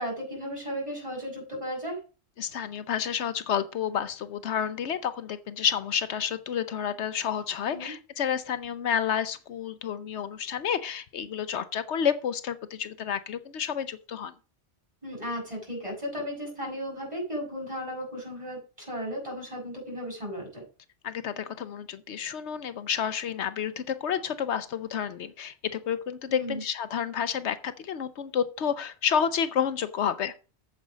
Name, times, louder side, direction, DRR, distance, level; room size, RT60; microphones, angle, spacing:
voice 1, 0.0-2.0 7.7-7.9 15.0-20.6 26.3-26.6, equal, 25° right, 6.7 m, -35 dB
voice 2, 2.4-14.3 21.0-30.3, left 8 dB, 80° left, 1.0 m, -30 dB
8.8 x 7.6 x 5.0 m
omnidirectional pair, 1.1 m